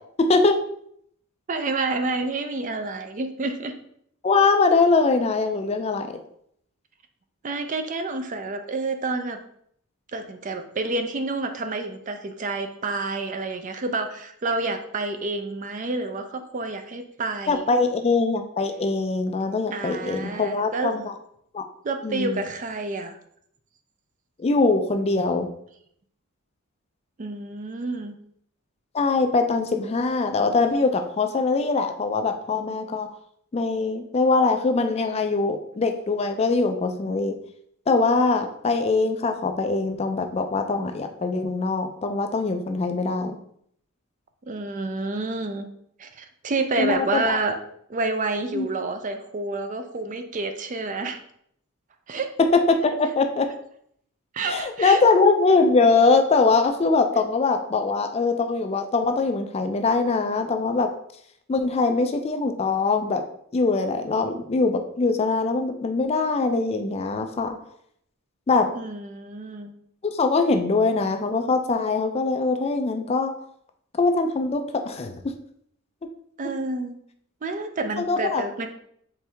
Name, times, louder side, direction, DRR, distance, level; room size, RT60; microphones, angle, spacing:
voice 1, 0.2-0.6 4.2-6.2 17.5-21.1 21.5-21.6 22.0-22.4 24.4-25.5 28.9-33.1 33.5-37.3 37.9-43.4 46.8-47.4 48.5-48.7 52.5-53.5 54.5-60.9 61.5-63.2 63.5-67.6 68.5-68.7 70.0-73.3 74.0-75.1 78.0-78.4, left 3 dB, 30° left, 7 dB, 0.3 m, -22 dB
voice 2, 1.5-3.7 7.4-9.4 10.1-17.7 19.7-20.9 21.8-23.2 27.2-28.1 44.5-45.7 46.0-47.6 47.9-51.2 52.1-52.3 54.3-55.0 68.7-69.7 76.4-77.0 77.4-78.7, right 3 dB, 35° right, 7 dB, 0.4 m, -29 dB
4.5 x 3.5 x 3.3 m, 0.68 s
head